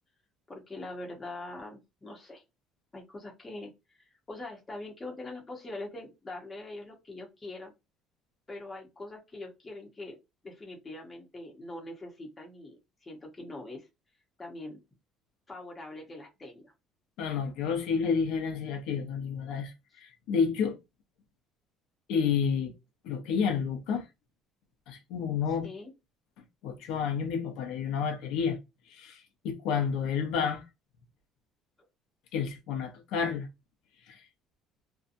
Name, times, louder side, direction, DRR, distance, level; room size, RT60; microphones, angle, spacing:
voice 1, 0.5-2.4 2.9-3.7 4.0-7.7 8.5-10.2 10.4-13.9 14.4-14.8 15.5-16.7 25.6-25.9, left 2 dB, 15° left, 0.9 m, -43 dB
voice 2, 17.2-20.8 22.1-22.7 23.0-24.1 24.9-25.7 26.6-28.6 28.9-30.6 32.3-33.5 34.1-34.2, left 6 dB, 70° left, 0.7 m, -30 dB
2.7 x 2.2 x 2.5 m
cardioid pair, 150°, 0 cm